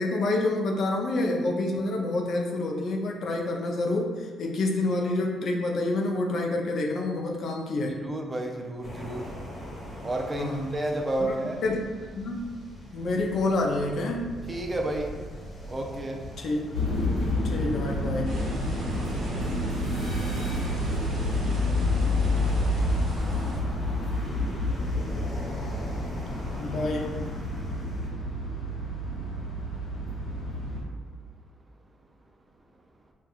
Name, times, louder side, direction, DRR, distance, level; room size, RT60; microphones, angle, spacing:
voice 1, 0.0-8.0 10.4-10.8 11.2-11.3 11.6-11.8 12.1-12.6 12.9-14.3 16.4-16.7 17.4-18.4 26.6-27.3, left 2 dB, 60° left, 1 dB, 0.5 m, -28 dB
voice 2, 8.0-9.3 10.0-11.6 14.5-15.1 15.7-16.2, right 1 dB, 25° right, 1 dB, 0.4 m, -31 dB
sound 1, 8.8-28.1, equal, 40° left, 1.1 m, -40 dB
sound 2, 16.7-30.8, left 1 dB, 80° left, 1.3 m, -29 dB
sound 3, 18.2-23.6, right 1 dB, 65° right, 1.0 m, -42 dB
4.4 x 2.3 x 2.4 m, 1.5 s
cardioid pair, 90°, 0 cm